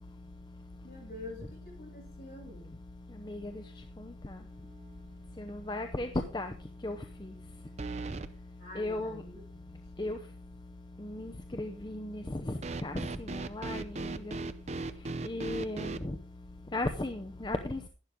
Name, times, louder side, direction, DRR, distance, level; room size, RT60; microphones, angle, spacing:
voice 1, 0.8-2.7 8.6-9.8, left 2 dB, 50° left, -2 dB, 7.8 m, -47 dB
sound 1, 4.7-5.1 5.5-5.6 7.8-8.3 12.6-16.0, right 3 dB, 35° right, 0.5 m, -37 dB
voice 2, 5.4-6.5 6.8-7.0 8.8-9.2 10.0-10.2 11.0-12.4 12.8-13.8 14.3-14.4 15.2-16.1 16.7-17.8, left 2 dB, 25° left, 6 dB, 0.7 m, -35 dB
11.5 x 11.0 x 3.7 m, 0.37 s
head